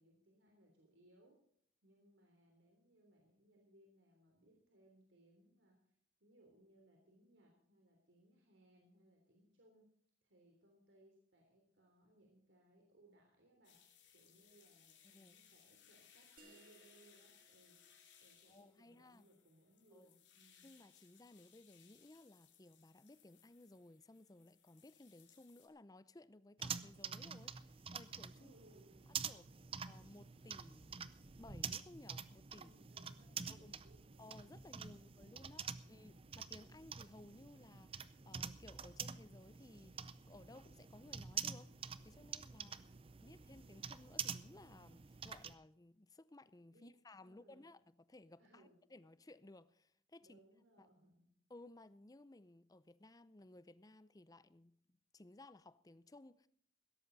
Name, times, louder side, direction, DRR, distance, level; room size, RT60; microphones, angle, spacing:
voice 1, 0.0-1.4 1.8-5.9 6.2-9.8 10.2-13.8 14.1-17.8 18.2-20.7 28.4-29.2 32.5-36.2 42.5-43.0 46.7-46.9 47.2-47.7 48.4-49.0 50.2-51.3, right 1 dB, 75° right, 3.4 m, -69 dB
sound 1, 13.6-25.7, left 8 dB, 70° left, 3.2 m, -67 dB
voice 2, 15.0-15.4 18.5-19.3 19.9-20.1 20.6-28.5 29.2-29.5 29.9-32.7 33.5-33.8 34.2-41.7 42.0-42.7 43.2-50.4 50.8-50.9 51.5-56.5, left 2 dB, 20° left, 0.5 m, -59 dB
sound 2, 16.4-21.7, right 3 dB, 50° right, 2.1 m, -71 dB
sound 3, 26.6-45.5, right 7 dB, 30° right, 0.6 m, -47 dB
16.5 x 13.0 x 4.1 m
head